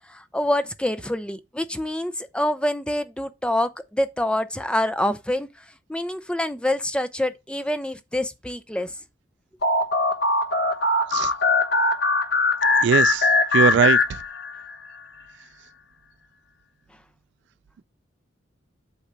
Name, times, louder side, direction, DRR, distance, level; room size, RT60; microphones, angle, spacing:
voice 1, 0.1-9.0, left 1 dB, 5° left, 0.6 m, -26 dB
sound 1, 9.6-14.7, left 3 dB, 60° left, 1.0 m, -21 dB
voice 2, 12.8-14.0, right 7 dB, 65° right, 0.3 m, -21 dB
8.1 x 2.8 x 6.0 m
head